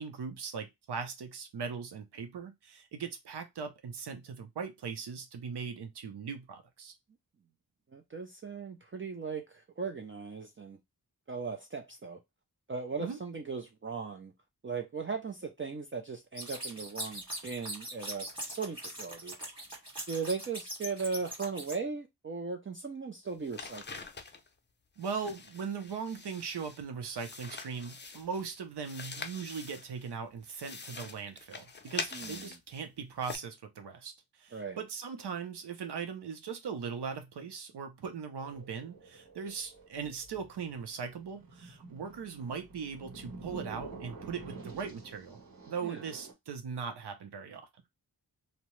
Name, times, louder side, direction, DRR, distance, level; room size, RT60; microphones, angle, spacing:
voice 1, 0.0-6.9 13.0-13.2 25.0-34.1 34.4-45.4 45.7-47.7, right 6 dB, 90° right, 0.6 m, -39 dB
voice 2, 7.9-10.8 11.3-12.2 12.7-14.3 14.6-19.3 20.1-24.1 32.1-32.6 34.5-34.8 45.8-46.1, right 5 dB, 35° right, 0.4 m, -38 dB
sound 1, 16.4-21.7, right 1 dB, 15° right, 1.6 m, -41 dB
sound 2, 23.3-24.5 25.0-26.8 27.1-28.5 28.8-30.1 30.4-32.8 33.2-33.4, left 4 dB, 30° left, 0.4 m, -44 dB
sound 3, 38.4-46.3, right 3 dB, 60° right, 1.3 m, -49 dB
2.7 x 2.0 x 3.0 m
wide cardioid pair, 80°, 39 cm